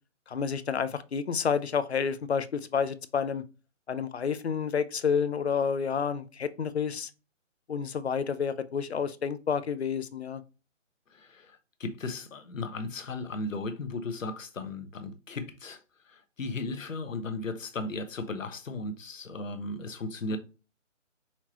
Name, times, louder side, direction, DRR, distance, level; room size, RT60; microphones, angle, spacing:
voice 1, 0.3-3.4 3.9-7.1 7.7-10.4, left 6 dB, 55° left, 0.6 m, -29 dB
voice 2, 11.1-15.8 16.1-20.4, left 2 dB, 80° left, 1.1 m, -36 dB
5.6 x 3.0 x 2.9 m
hypercardioid pair, 175°, 38 cm